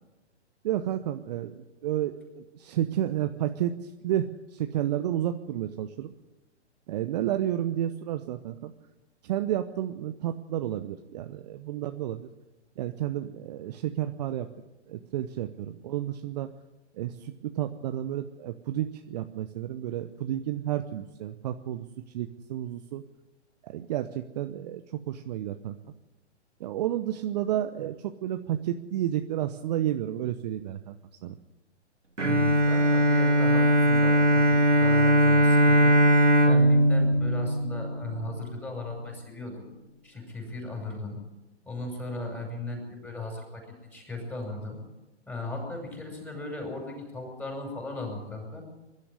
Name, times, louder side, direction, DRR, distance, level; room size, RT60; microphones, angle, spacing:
voice 1, 0.6-6.1 6.9-8.7 9.2-12.3 12.8-14.5 14.9-16.5 16.9-21.9 22.1-23.0 23.6-25.8 26.6-30.9 31.2-31.3, right 12 dB, 35° right, 8 dB, 0.9 m, -31 dB
voice 2, 32.2-36.0 36.5-39.7 40.0-41.2 41.7-43.6 43.9-44.8 45.3-48.6, left 2 dB, 5° left, 1 dB, 5.9 m, -37 dB
Bowed string instrument, 32.2-38.4, equal, 90° right, 2.4 m, -20 dB
22.5 x 12.0 x 9.9 m, 1.0 s
figure-of-eight pair, 125°, 35 cm